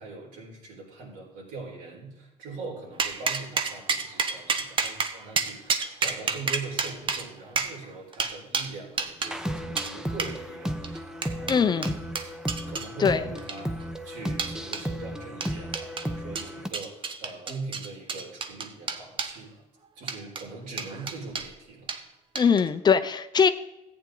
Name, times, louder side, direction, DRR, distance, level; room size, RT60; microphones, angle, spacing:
voice 1, 0.0-10.9 11.2-12.3 12.7-19.5 19.9-22.2, right 3 dB, 80° right, -2 dB, 4.6 m, -41 dB
sound 1, 3.0-9.3 9.8-9.9 10.2-10.3 10.8-12.9 13.4-13.8 14.4-14.8 15.4-16.1 16.4-19.4 20.0-20.4 20.8-21.5 21.9-22.0 22.4-22.7, right 5 dB, 40° right, 1.0 m, -30 dB
sound 2, 9.3-16.7, equal, 5° right, 0.9 m, -34 dB
voice 2, 11.5-12.0 13.0-13.2 22.4-23.5, left 6 dB, 30° left, 11 dB, 0.6 m, -21 dB
14.5 x 8.8 x 3.9 m, 0.95 s
cardioid pair, 105°, 14 cm